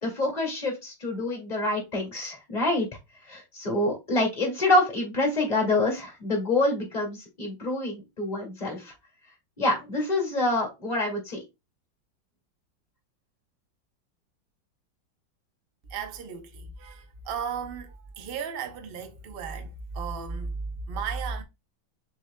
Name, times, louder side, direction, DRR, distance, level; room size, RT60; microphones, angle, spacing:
voice 1, 0.0-2.9 3.3-8.9 9.6-11.4, left 2 dB, 20° left, 2.1 m, -26 dB
voice 2, 15.9-21.4, right 5 dB, 90° right, 0.5 m, -35 dB
6.2 x 3.8 x 2.2 m
omnidirectional pair, 2.2 m